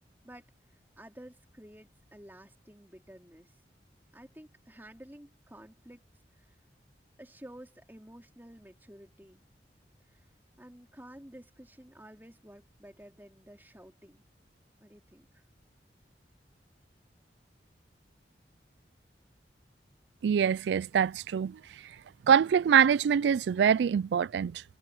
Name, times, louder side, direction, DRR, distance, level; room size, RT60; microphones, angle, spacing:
voice 1, 1.0-3.6 4.1-6.1 6.3-6.6 7.2-9.4 10.1-10.3 10.6-14.2 14.8-15.4, right 1 dB, 10° right, 3.4 m, -52 dB
voice 2, 20.2-21.6 22.3-24.6, right 7 dB, 75° right, 0.3 m, -24 dB
head